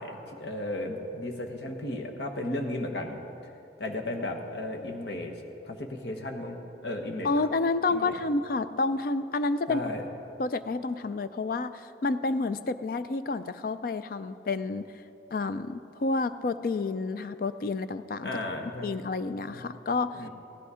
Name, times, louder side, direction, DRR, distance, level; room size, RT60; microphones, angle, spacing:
voice 1, 0.0-3.2 3.8-5.4 5.6-7.3 7.9-8.1 9.7-10.1 18.2-18.9 19.5-19.6 20.1-20.3, left 1 dB, 75° left, 2 dB, 1.2 m, -34 dB
voice 2, 7.2-9.8 10.4-14.9 15.3-18.4 18.8-20.2, left 3 dB, 50° left, 12 dB, 0.4 m, -29 dB
16.0 x 11.0 x 4.9 m, 2.9 s
head